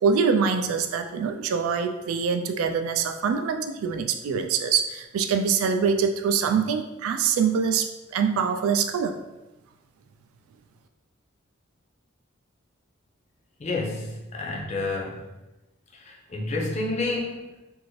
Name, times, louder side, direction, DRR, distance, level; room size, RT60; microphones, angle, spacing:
voice 1, 0.0-9.2, right 6 dB, 85° right, 6 dB, 0.3 m, -24 dB
voice 2, 13.6-15.3 15.9-17.6, left 2 dB, 35° left, -1 dB, 0.5 m, -30 dB
2.6 x 2.5 x 3.1 m, 1.0 s
head